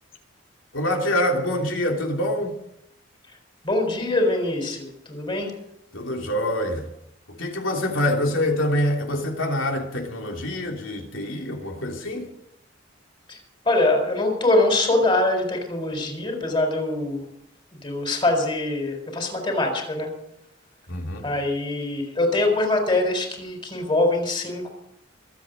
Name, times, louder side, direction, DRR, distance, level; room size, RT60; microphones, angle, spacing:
voice 1, 0.7-2.6 5.9-6.9 7.3-12.3 20.9-21.3, left 1 dB, 80° left, 3.1 m, -25 dB
voice 2, 3.6-5.5 13.3-13.4 13.6-17.2 17.8-20.1 21.2-24.7, left 2 dB, 25° left, 4.2 m, -23 dB
24.0 x 8.3 x 5.2 m
head